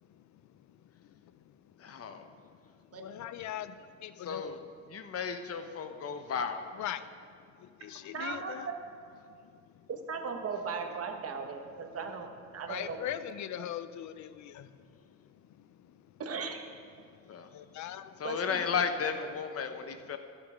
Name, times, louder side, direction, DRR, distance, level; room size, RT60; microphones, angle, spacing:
voice 1, 1.8-2.2 4.2-4.6 4.9-6.7 17.3-17.5 18.2-20.2, left 6 dB, 55° left, 8 dB, 0.8 m, -34 dB
voice 2, 2.9-4.6 6.7-7.1 7.6-8.7 12.7-14.7 17.5-18.1, left 11 dB, 75° left, 13 dB, 0.5 m, -40 dB
voice 3, 8.1-8.7 9.9-12.3 12.5-13.0 16.2-16.6 18.2-18.6, right 5 dB, 55° right, 4 dB, 1.2 m, -37 dB
13.5 x 6.7 x 5.1 m, 2.3 s
cardioid pair, 110°, 29 cm